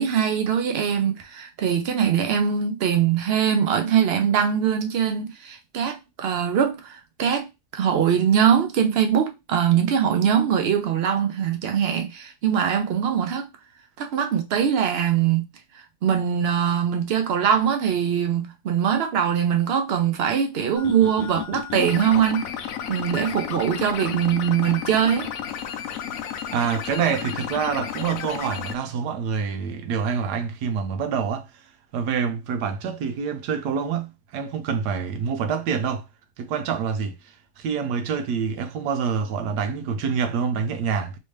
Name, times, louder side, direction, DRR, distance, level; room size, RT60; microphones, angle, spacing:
voice 1, 0.0-7.5 7.7-13.5 14.0-15.4 16.0-22.5 22.9-25.3, right 8 dB, 70° right, 0.6 m, -22 dB
sound 1, 20.8-28.7, left 9 dB, 70° left, 0.9 m, -32 dB
voice 2, 26.5-31.7 31.9-36.0 36.4-41.2, right 6 dB, 85° right, 1.2 m, -26 dB
3.3 x 2.8 x 3.1 m
omnidirectional pair, 1.7 m